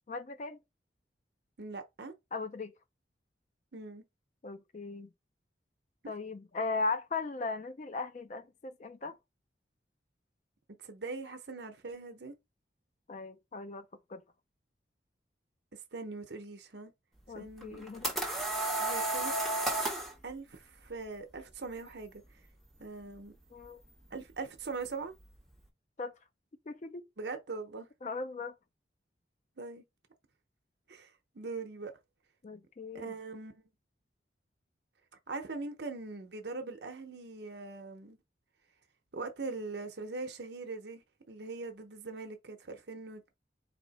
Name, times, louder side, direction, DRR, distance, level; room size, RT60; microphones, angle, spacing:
voice 1, 0.1-0.6 2.3-2.7 4.4-5.1 6.1-9.2 13.1-14.2 17.3-18.1 23.5-23.8 26.0-26.1 26.7-27.1 28.0-28.5 32.4-33.1, left 3 dB, 40° left, 0.4 m, -38 dB
voice 2, 1.6-2.1 3.7-4.0 10.8-12.3 15.7-16.9 17.3-17.8 18.8-19.3 20.2-22.4 22.8-23.3 24.1-25.1 27.2-27.9 29.6-29.8 30.9-31.9 32.9-33.6 35.3-38.2 39.1-43.3, right 3 dB, 70° right, 0.8 m, -41 dB
sound 1, 17.6-20.1, right 2 dB, ahead, 1.2 m, -32 dB
4.2 x 2.8 x 4.0 m
head